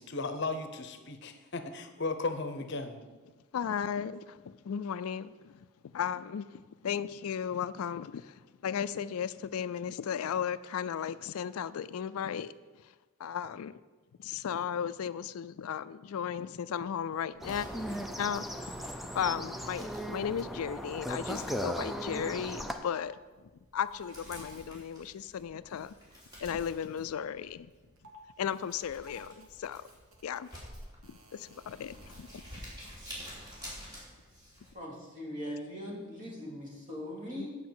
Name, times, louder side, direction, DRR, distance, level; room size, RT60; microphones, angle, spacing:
voice 1, 0.0-3.0, left 3 dB, 50° left, 8 dB, 0.8 m, -35 dB
voice 2, 3.5-12.5 13.2-13.8 14.2-17.7 18.2-18.9 19.1-23.2 23.7-26.0 26.4-27.7 28.4-29.8 30.2-30.5 31.0-32.4 37.4-37.5, left 8 dB, 80° left, 15 dB, 0.4 m, -35 dB
Crumpling crinkling, 17.3-34.7, equal, 20° right, 3.0 m, -51 dB
sound 1, 17.4-22.7, equal, ahead, 0.5 m, -37 dB
sound 2, 20.7-20.9 21.7-21.9 22.5-23.0 23.8-24.5 28.0-28.2 28.5-32.9, left 1 dB, 75° right, 1.8 m, -54 dB
voice 3, 34.7-37.6, equal, 35° right, -4 dB, 2.8 m, -40 dB
9.3 x 5.4 x 7.8 m, 1.3 s
head